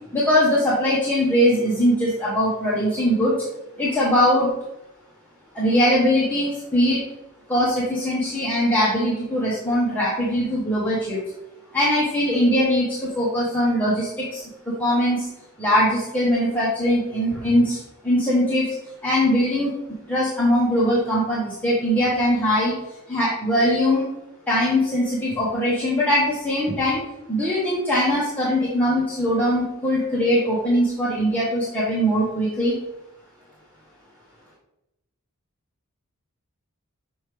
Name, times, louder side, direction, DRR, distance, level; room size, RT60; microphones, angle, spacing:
voice 1, 0.1-3.4 3.8-4.5 5.5-7.0 7.5-11.2 11.7-15.3 15.6-18.7 19.0-19.7 20.1-22.7 23.1-24.1 24.5-32.8, equal, 10° left, -8 dB, 1.1 m, -21 dB
6.4 x 4.7 x 3.3 m, 0.91 s
head